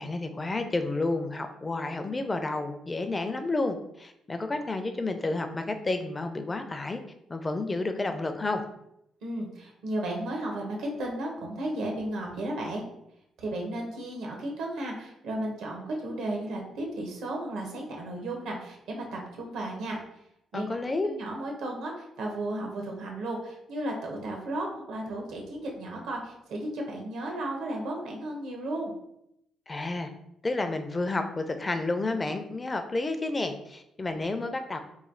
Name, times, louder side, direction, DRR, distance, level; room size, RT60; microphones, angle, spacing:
voice 1, 0.0-7.0 7.3-8.6 20.5-21.1 29.7-30.1 30.4-34.8, left 2 dB, 25° left, 7 dB, 0.4 m, -30 dB
voice 2, 9.2-12.8 13.4-20.0 20.5-20.8 21.0-28.9, right 1 dB, 80° right, 0 dB, 0.9 m, -34 dB
3.1 x 2.3 x 3.7 m, 0.79 s
cardioid pair, 90°, 0 cm